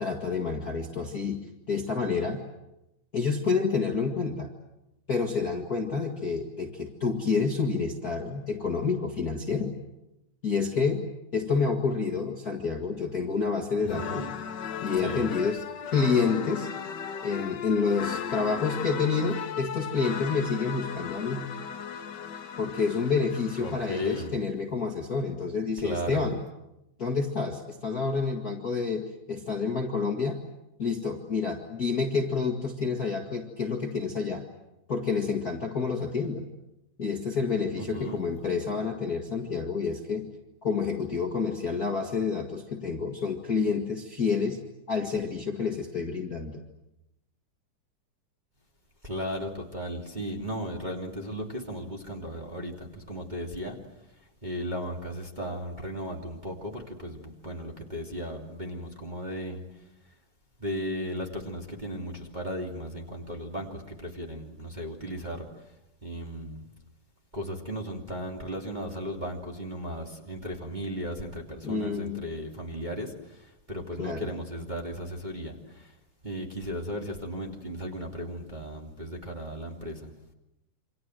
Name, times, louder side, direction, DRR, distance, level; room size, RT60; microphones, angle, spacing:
voice 1, 0.0-2.4 3.1-4.5 5.1-9.7 10.4-11.1 11.3-14.2 14.8-16.7 17.2-21.4 22.6-26.4 27.0-30.4 30.8-34.5 34.9-36.5 37.0-40.3 40.6-44.6 44.9-46.6 71.6-72.2 74.0-74.3, left 5 dB, 30° left, 2 dB, 2.1 m, -28 dB
voice 2, 13.8-14.3 15.0-15.3 23.6-24.4 25.8-26.3 37.8-38.2 49.0-53.8 54.2-59.6 60.6-65.7 66.0-66.7 67.3-75.9 76.2-80.1, equal, 15° right, 0 dB, 2.6 m, -36 dB
sound 1, 13.9-24.3, left 7 dB, 70° left, 1.0 m, -37 dB
28.5 x 26.0 x 7.8 m, 0.90 s
omnidirectional pair, 3.7 m